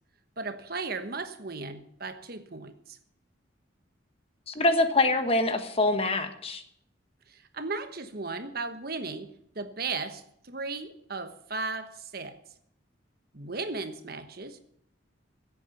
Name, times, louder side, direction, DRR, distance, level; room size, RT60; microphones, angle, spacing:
voice 1, 0.4-3.0 7.3-12.4 13.3-14.6, right 3 dB, 50° right, 9 dB, 1.2 m, -36 dB
voice 2, 4.5-6.6, left 2 dB, 30° left, 8 dB, 1.3 m, -25 dB
16.0 x 8.4 x 7.2 m, 0.71 s
head